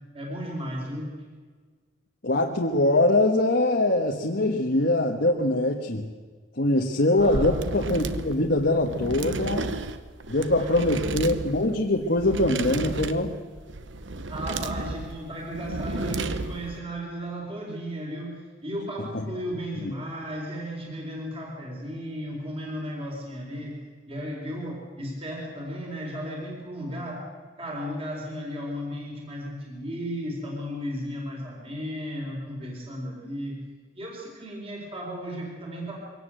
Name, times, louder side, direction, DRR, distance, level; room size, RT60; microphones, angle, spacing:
voice 1, 0.1-1.1 7.2-7.5 10.4-11.0 14.3-23.7 24.1-27.3 27.6-33.6 33.9-36.0, equal, 30° right, -1 dB, 4.5 m, -35 dB
voice 2, 2.2-6.1 6.6-9.7 10.3-13.4 19.1-19.2 19.8-19.9, left 1 dB, 55° left, 1 dB, 1.4 m, -23 dB
sound 1, 7.2-16.8, right 2 dB, 70° right, 1.0 m, -33 dB
23.0 x 18.0 x 7.9 m, 1.5 s
head